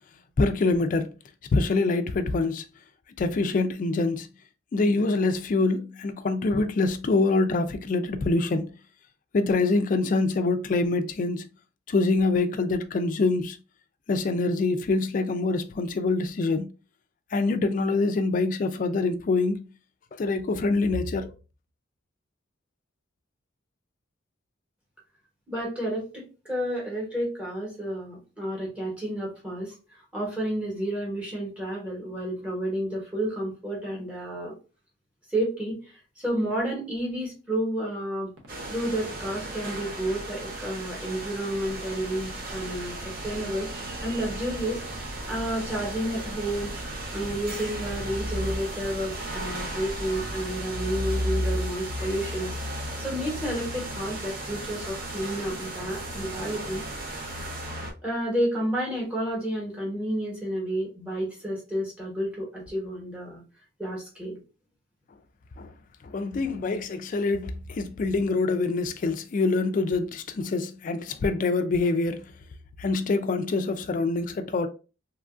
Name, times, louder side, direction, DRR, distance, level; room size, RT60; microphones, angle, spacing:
voice 1, 0.4-1.1 1.5-2.7 3.2-4.3 4.7-8.7 9.3-11.5 11.9-13.6 14.1-16.7 17.3-19.7 20.2-21.3 65.6-65.7 66.0-72.2 72.8-74.7, left 3 dB, 40° left, 0.3 m, -25 dB
voice 2, 25.5-29.8 30.1-34.5 35.3-38.3 38.7-43.7 44.0-44.8 45.3-46.7 47.1-56.8 58.0-63.4 63.8-64.4, right 1 dB, 5° right, 1.1 m, -31 dB
sound 1, 38.4-50.7, right 2 dB, 85° right, 0.8 m, -48 dB
sound 2, 38.5-57.9, right 1 dB, 50° right, 0.6 m, -34 dB
2.9 x 2.4 x 2.4 m
head